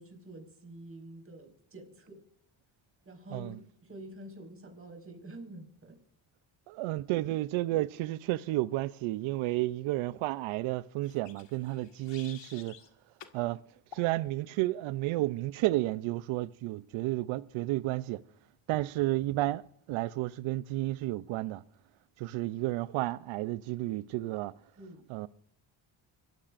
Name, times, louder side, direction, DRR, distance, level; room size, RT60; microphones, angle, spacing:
voice 1, 0.0-2.2 3.0-6.0 24.8-25.0, right 1 dB, 30° right, 4.9 m, -48 dB
voice 2, 6.7-12.8 13.3-13.6 13.9-18.2 18.7-19.6 19.9-21.6 22.2-24.5 25.1-25.3, right 17 dB, 85° right, 0.6 m, -32 dB
sound 1, 11.0-12.9 13.2-13.4 13.9-14.1, left 8 dB, 65° left, 1.8 m, -51 dB
25.0 x 14.5 x 2.5 m
cardioid pair, 90°, 47 cm